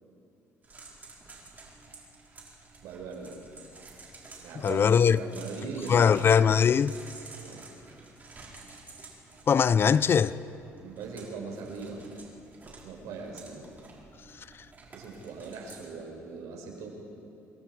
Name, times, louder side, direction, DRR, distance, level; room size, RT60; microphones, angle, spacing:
sound 1, 0.6-15.9, right 3 dB, 30° right, 5.3 m, -51 dB
voice 1, 2.8-3.3 4.4-6.3 7.4-7.7 10.8-12.2 12.8-13.7 14.9-16.9, right 4 dB, 80° right, 5.4 m, -40 dB
voice 2, 4.6-5.2 5.9-6.9 9.5-10.3, left 7 dB, 40° left, 0.5 m, -21 dB
27.5 x 21.5 x 4.8 m
cardioid pair, 90°, 6 cm